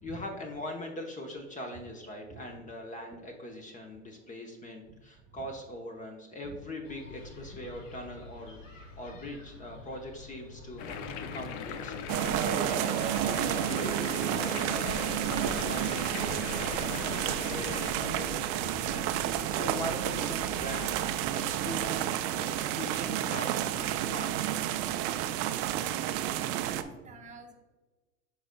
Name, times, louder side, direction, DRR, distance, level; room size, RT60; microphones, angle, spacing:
voice 1, 0.0-11.9 12.3-15.0 15.4-21.0 21.3-24.3, left 1 dB, 20° left, 3 dB, 0.9 m, -41 dB
voice 2, 2.3-2.6 6.4-6.6 16.3-16.4 18.6-18.7 25.6-26.3 26.6-27.5, right 3 dB, 20° right, 4 dB, 1.1 m, -48 dB
sound 1, 6.8-22.0, left 2 dB, 85° left, 1.3 m, -45 dB
sound 2, 10.8-17.9, left 7 dB, 45° left, 0.6 m, -40 dB
sound 3, 12.1-26.8, right 12 dB, 45° right, 0.5 m, -31 dB
10.5 x 3.9 x 2.2 m, 1.2 s
hypercardioid pair, 100°, 38 cm